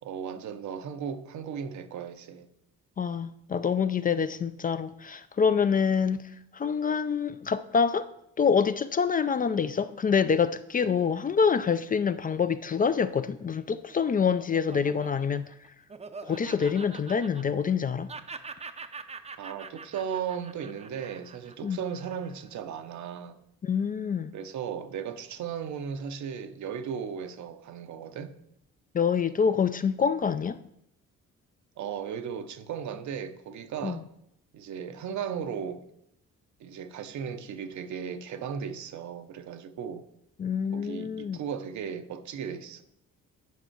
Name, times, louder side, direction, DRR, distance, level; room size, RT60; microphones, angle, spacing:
voice 1, 0.0-2.5 19.4-23.4 24.3-28.4 31.8-34.0 34.5-35.9 36.6-40.1 40.7-42.8, right 7 dB, 70° right, 0.8 m, -36 dB
voice 2, 3.0-6.2 6.5-8.1 8.4-15.5 16.2-18.1 21.6-21.8 23.6-24.3 28.9-30.6 33.8-34.0 40.4-41.4, left 6 dB, 30° left, 0.3 m, -26 dB
Laughter, 13.7-17.8 18.1-22.5, right 4 dB, 20° right, 0.6 m, -44 dB
9.3 x 5.4 x 4.5 m
cardioid pair, 90°, 30 cm